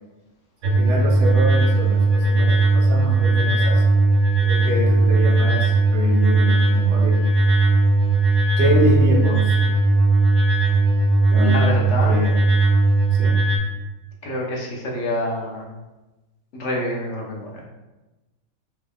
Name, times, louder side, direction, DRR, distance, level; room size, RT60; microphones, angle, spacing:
voice 1, 0.6-4.0 4.4-7.2 7.5-7.6 8.6-9.6 11.3-11.6 12.0-12.4 13.1-13.4, equal, 60° right, -1 dB, 1.0 m, -26 dB
sound 1, 0.6-13.6, right 2 dB, 90° right, 1.2 m, -17 dB
voice 2, 11.4-12.2 14.2-15.7 16.5-17.7, left 1 dB, 60° left, -1 dB, 0.9 m, -27 dB
4.5 x 2.2 x 3.5 m, 1.1 s
omnidirectional pair, 1.4 m